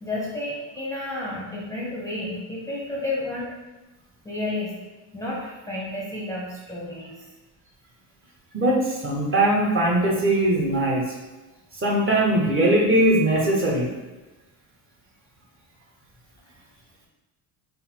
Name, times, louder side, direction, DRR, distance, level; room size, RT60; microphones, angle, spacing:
voice 1, 0.0-3.5 4.2-4.7 5.1-7.1, left 2 dB, 10° left, -6 dB, 0.6 m, -31 dB
voice 2, 8.5-11.0 11.8-13.9, right 1 dB, 30° right, -2 dB, 0.9 m, -20 dB
4.0 x 2.0 x 4.3 m, 1.1 s
cardioid pair, 115°, 44 cm